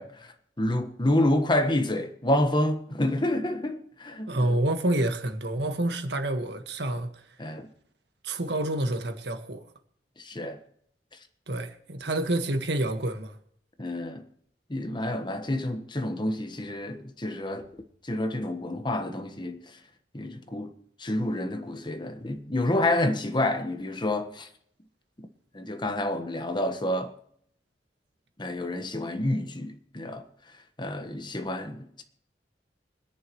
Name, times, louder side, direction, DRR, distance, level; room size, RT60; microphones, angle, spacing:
voice 1, 0.0-4.6 7.4-7.7 10.2-10.6 13.8-14.2 14.7-17.7 18.0-19.6 20.1-20.7 21.0-24.5 25.5-27.1 28.4-30.2 30.8-32.0, left 1 dB, 25° left, 1.3 m, -28 dB
voice 2, 4.3-7.2 8.2-9.6 11.5-13.4, right 1 dB, 70° right, 1.6 m, -28 dB
25.5 x 10.5 x 3.1 m
head